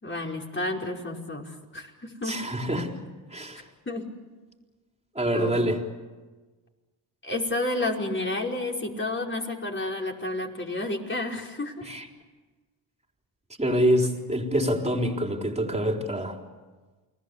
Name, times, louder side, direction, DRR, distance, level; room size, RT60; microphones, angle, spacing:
voice 1, 0.0-2.4 3.9-4.1 5.3-5.6 7.2-11.9, left 2 dB, 25° left, 1 dB, 5.2 m, -31 dB
voice 2, 2.3-2.9 3.3-3.6 5.2-5.8 11.9-12.0 13.6-16.4, equal, 15° right, 3 dB, 4.2 m, -26 dB
29.5 x 20.0 x 8.3 m, 1.3 s
supercardioid pair, 65°, 47 cm